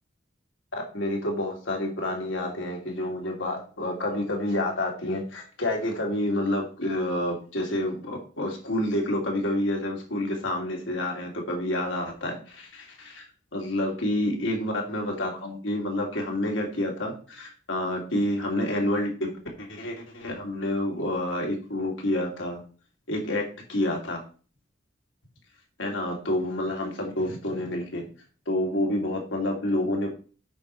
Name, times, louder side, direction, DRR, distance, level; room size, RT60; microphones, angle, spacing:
voice 1, 0.7-19.3 19.6-22.6 23.1-24.2 25.8-28.1 28.5-30.1, left 1 dB, 90° left, 0 dB, 2.7 m, -29 dB
8.3 x 4.8 x 5.6 m, 0.38 s
head